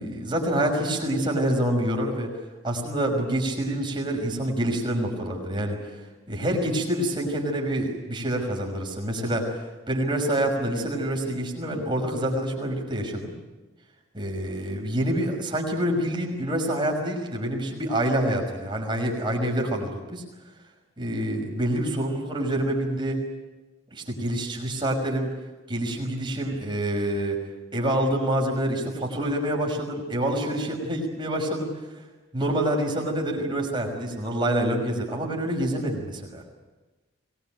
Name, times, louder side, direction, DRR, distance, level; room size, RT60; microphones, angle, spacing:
voice 1, 0.0-2.3 2.6-5.9 6.3-13.3 14.1-20.2 21.0-23.2 23.9-25.3 25.7-27.4 27.7-31.7 32.3-36.4, right 1 dB, 25° right, 0 dB, 5.7 m, -27 dB
23.5 x 21.0 x 9.2 m, 1.2 s
head